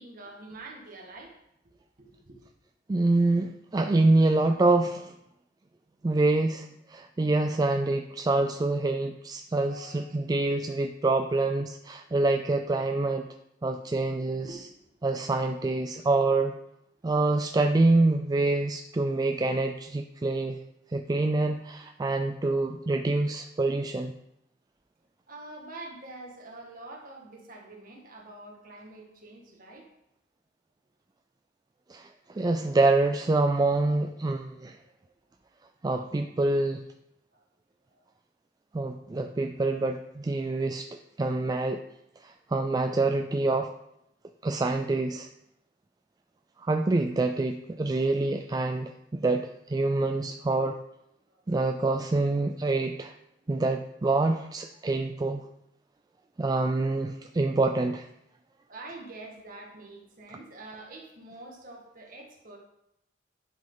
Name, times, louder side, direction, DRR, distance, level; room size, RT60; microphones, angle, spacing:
voice 1, 0.0-1.4 2.0-2.4 9.6-10.3 14.4-14.9 25.3-29.9 34.8-35.1 37.3-37.4 37.9-38.1 51.3-51.4 58.5-62.6, right 2 dB, 50° right, -1 dB, 1.8 m, -46 dB
voice 2, 2.9-5.1 6.0-13.3 13.6-14.5 15.0-16.5 17.0-20.6 20.9-24.1 31.9-34.8 35.8-36.8 38.7-40.9 41.2-41.8 42.2-43.7 44.4-45.3 46.6-50.8 51.5-53.1 53.5-55.4 56.4-58.1, right 2 dB, 20° right, 5 dB, 0.3 m, -26 dB
10.5 x 5.2 x 3.9 m, 0.79 s
head